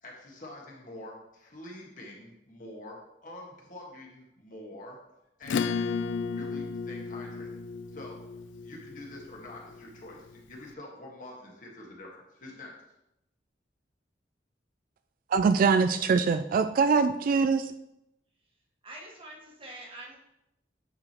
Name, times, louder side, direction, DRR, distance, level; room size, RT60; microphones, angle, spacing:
voice 1, 0.0-5.0 5.4-5.9 6.3-7.6 7.9-8.3 8.6-12.8, left 1 dB, 50° left, -2 dB, 1.6 m, -46 dB
Acoustic guitar / Strum, 5.4-10.4, left 5 dB, 90° left, 0.3 m, -34 dB
voice 2, 15.3-17.7, right 5 dB, 50° right, 10 dB, 0.3 m, -23 dB
voice 3, 18.8-20.2, right 1 dB, 30° right, -2 dB, 1.5 m, -45 dB
9.5 x 5.0 x 3.0 m, 0.83 s
head